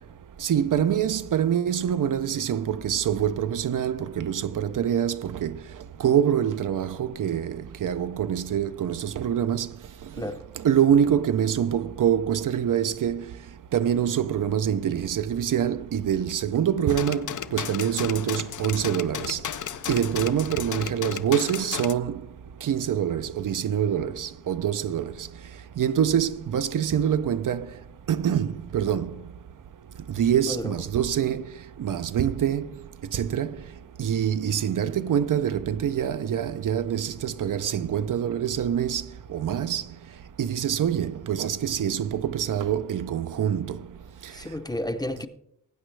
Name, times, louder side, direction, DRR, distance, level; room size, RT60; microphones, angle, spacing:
voice 1, 0.4-5.6 6.0-9.7 10.6-13.2 13.7-19.4 19.9-22.2 22.6-25.1 25.8-27.7 28.1-28.5 28.7-29.1 30.2-31.4 31.8-32.7 33.1-33.5 34.0-39.0 39.3-39.8 40.4-43.8, right 9 dB, 70° right, 0.5 m, -25 dB
sound 1, 16.9-21.9, left 9 dB, 65° left, 0.5 m, -34 dB
voice 2, 44.3-45.3, left 1 dB, 10° left, 0.6 m, -31 dB
18.5 x 9.0 x 3.2 m
wide cardioid pair, 130°, 33 cm